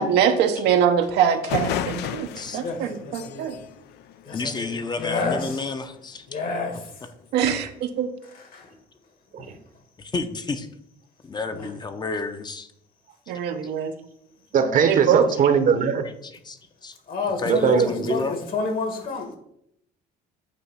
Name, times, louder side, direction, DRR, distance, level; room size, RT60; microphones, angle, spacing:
voice 1, 0.0-2.3 2.5-3.5 7.3-7.6 8.0-8.1 13.3-13.9 14.9-15.2, right 8 dB, 90° right, 0.8 m, -22 dB
sound 1, 1.0-1.1 1.4-4.9, left 9 dB, 80° left, 0.4 m, -33 dB
voice 2, 2.6-3.5 4.3-5.7 6.3-7.1 8.5-8.6 9.4-9.5 11.5-11.7 17.1-19.3, left 3 dB, 60° left, 1.8 m, -30 dB
voice 3, 4.3-6.3 7.4-7.5 10.0-10.7 11.2-12.7 16.0-17.0 17.4-18.4, left 3 dB, 25° left, 0.6 m, -31 dB
voice 4, 14.5-16.0 17.5-18.1, right 6 dB, 50° right, 0.8 m, -20 dB
8.3 x 2.9 x 5.7 m
cardioid pair, 110°, 17 cm